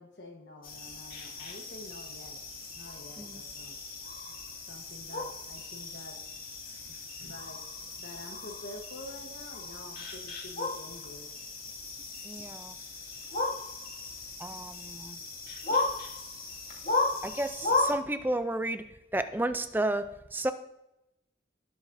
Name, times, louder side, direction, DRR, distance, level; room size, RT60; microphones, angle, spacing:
voice 1, 0.0-2.4 2.7-3.8 4.7-6.2 6.9-7.6 8.0-11.3, left 1 dB, 75° left, 2 dB, 1.3 m, -47 dB
sound 1, 0.6-17.9, left 3 dB, 55° left, 2.2 m, -36 dB
voice 2, 12.2-12.8 14.4-15.2 17.2-18.8 19.1-20.5, right 1 dB, 10° right, 10 dB, 0.5 m, -32 dB
18.5 x 8.1 x 2.7 m, 0.89 s
head